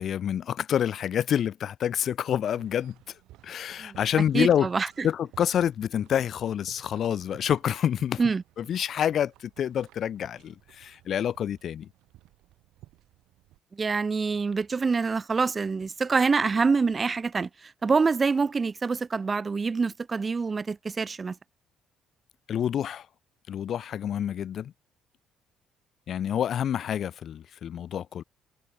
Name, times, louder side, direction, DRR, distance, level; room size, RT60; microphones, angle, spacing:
voice 1, 0.0-2.9 3.4-4.7 5.0-8.2 8.6-11.9 22.5-23.1 23.5-24.7 26.1-28.2, left 9 dB, 55° left, 0.6 m, -27 dB
sound 1, 2.5-13.6, right 16 dB, 85° right, 4.5 m, -55 dB
voice 2, 4.3-5.1 8.2-8.4 13.7-21.4, right 4 dB, 25° right, 0.4 m, -26 dB
cardioid pair, 115°, 0 cm